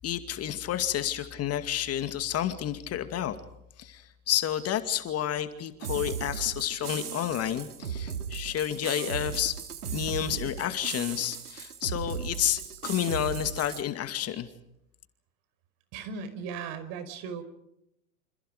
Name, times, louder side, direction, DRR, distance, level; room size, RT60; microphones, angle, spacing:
voice 1, 0.0-3.4 3.8-9.6 9.9-14.5, left 11 dB, 35° left, 9 dB, 2.3 m, -30 dB
sound 1, 5.8-13.8, right 7 dB, 80° right, 2.9 m, -37 dB
voice 2, 15.9-17.4, right 6 dB, 50° right, 11 dB, 5.3 m, -37 dB
28.5 x 27.5 x 5.1 m, 0.79 s
hypercardioid pair, 95°, 45 cm